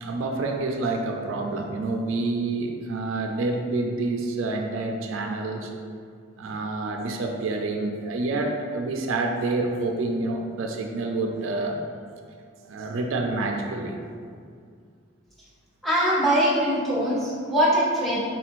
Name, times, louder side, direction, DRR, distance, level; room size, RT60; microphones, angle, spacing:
voice 1, 0.0-5.7 6.4-11.8 12.7-14.0, right 2 dB, 75° right, 2 dB, 0.4 m, -28 dB
voice 2, 15.8-18.2, equal, ahead, -8 dB, 0.8 m, -22 dB
3.7 x 2.5 x 4.5 m, 2.2 s
head